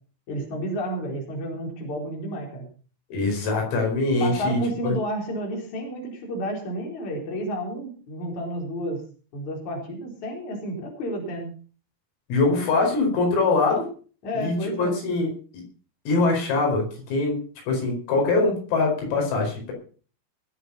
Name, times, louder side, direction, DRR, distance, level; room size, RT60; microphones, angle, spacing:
voice 1, 0.3-2.7 4.2-9.0 9.3-11.5 14.2-14.9, equal, 35° left, 0 dB, 5.3 m, -31 dB
voice 2, 3.1-4.6 4.8-5.0 12.3-13.9 14.3-15.6 16.1-19.7, left 3 dB, 85° left, 1 dB, 7.4 m, -23 dB
20.5 x 7.9 x 5.7 m, 0.40 s
omnidirectional pair, 5.9 m